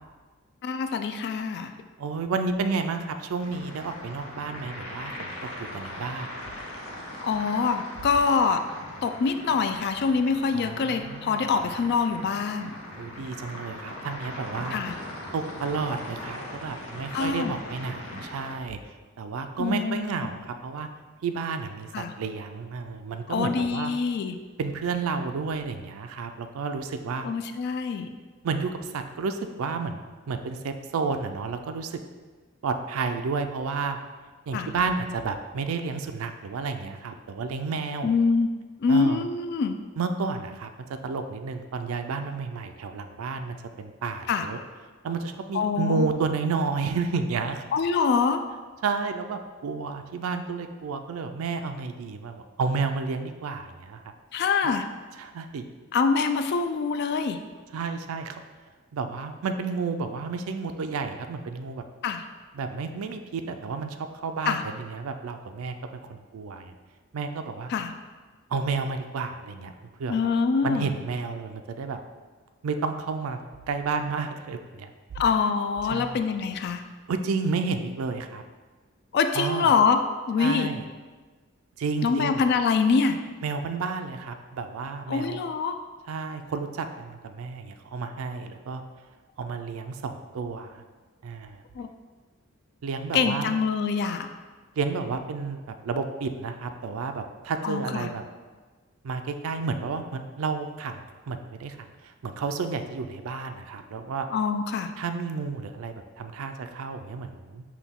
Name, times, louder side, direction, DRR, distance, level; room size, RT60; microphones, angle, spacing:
voice 1, 0.6-1.7 7.2-8.6 9.0-12.7 14.7-14.9 17.1-17.6 19.6-20.1 21.9-22.1 23.3-24.4 27.2-28.1 34.5-34.7 38.0-38.5 38.8-39.8 44.3-44.5 45.5-46.1 47.7-48.4 54.3-54.9 55.9-57.4 62.0-62.2 64.5-64.6 67.7-67.9 70.1-70.9 75.2-76.8 79.1-80.0 80.3-80.7 82.0-83.2 85.1-85.7 91.8-91.9 93.1-94.3 97.6-98.1 104.3-104.9, left 5 dB, 50° left, 8 dB, 0.3 m, -25 dB
voice 2, 2.0-6.3 10.5-11.4 13.0-14.8 15.3-18.8 19.2-20.9 21.2-23.9 24.6-27.3 28.4-32.0 32.6-34.0 34.5-38.1 38.9-39.2 40.0-40.7 41.0-44.6 45.0-47.6 48.8-54.0 55.2-55.6 57.7-58.4 58.9-61.8 62.5-65.7 66.1-66.7 67.1-67.7 68.5-69.7 70.0-70.3 70.6-72.0 72.6-73.4 73.7-74.9 75.9-76.2 77.1-78.4 79.3-79.7 80.4-80.8 81.8-82.4 83.4-85.4 86.1-88.8 89.4-90.8 91.2-91.6 92.8-93.6 94.8-98.2 99.0-101.0 101.3-101.8 102.0-104.3 105.0-107.6, right 4 dB, 85° right, 7 dB, 0.4 m, -31 dB
sound 1, 3.4-18.5, left 1 dB, 75° left, 0.8 m, -40 dB
5.9 x 2.3 x 3.6 m, 1.4 s
head